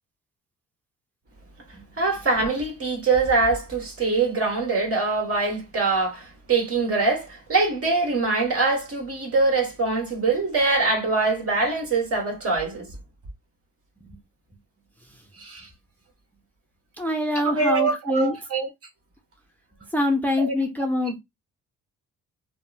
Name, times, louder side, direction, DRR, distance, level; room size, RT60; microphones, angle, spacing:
voice 1, 2.0-12.9 15.4-15.7 17.4-18.7 20.4-20.5, right 3 dB, 50° right, 1.7 m, -23 dB
voice 2, 17.0-18.3 19.9-21.2, left 2 dB, 5° left, 0.6 m, -25 dB
3.4 x 2.1 x 2.5 m
cardioid pair, 90°, 30 cm